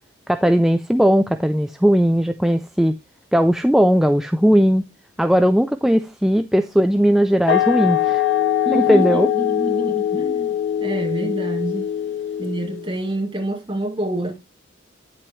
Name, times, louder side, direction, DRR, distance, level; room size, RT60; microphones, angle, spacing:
voice 1, 0.3-2.9 3.3-4.8 5.2-8.2 8.7-9.3, equal, ahead, 0.4 m, -17 dB
sound 1, 7.5-12.9, left 11 dB, 65° left, 1.6 m, -22 dB
voice 2, 8.6-11.9 12.4-14.3, right 1 dB, 25° right, 2.5 m, -27 dB
9.2 x 7.6 x 3.1 m
head